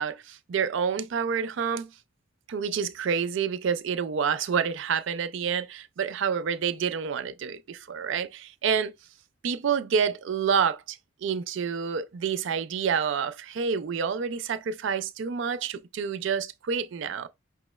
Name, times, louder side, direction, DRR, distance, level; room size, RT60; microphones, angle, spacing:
voice 1, 0.0-1.9 2.5-8.9 9.4-17.3, right 6 dB, 65° right, 0.4 m, -28 dB
5.5 x 3.0 x 2.2 m
head